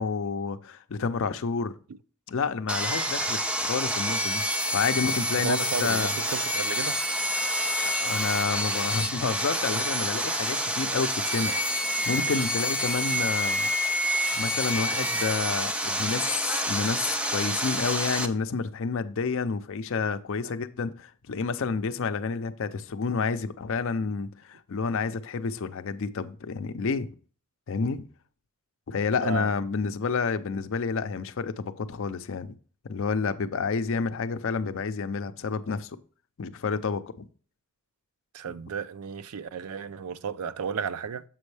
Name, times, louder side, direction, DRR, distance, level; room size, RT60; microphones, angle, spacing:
voice 1, 0.0-1.7 2.3-4.4 4.7-6.2 7.8-13.7 14.4-27.1 27.7-28.0 28.9-32.5 32.8-36.0 36.4-37.3 38.4-38.5, left 5 dB, 60° left, 0.5 m, -29 dB
Sawing, 2.7-18.3, equal, 5° right, 0.4 m, -28 dB
voice 2, 5.3-7.0 29.2-29.5 38.3-41.2, right 6 dB, 85° right, 0.4 m, -33 dB
7.5 x 5.3 x 3.2 m
head